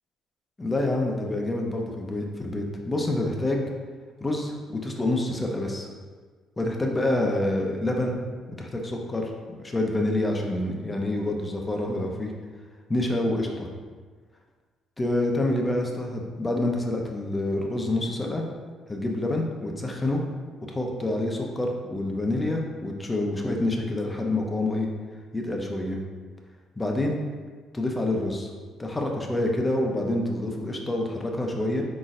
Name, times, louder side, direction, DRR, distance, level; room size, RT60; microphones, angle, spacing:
voice 1, 0.6-3.6 4.2-5.9 6.6-8.2 8.6-9.3 9.6-12.3 12.9-13.7 15.0-18.4 18.9-20.2 20.7-24.9 25.3-26.0 26.8-27.1 27.7-28.5 28.8-31.8, left 1 dB, 20° left, 1 dB, 0.7 m, -27 dB
4.1 x 3.8 x 2.5 m, 1.5 s
supercardioid pair, 70°, 0 cm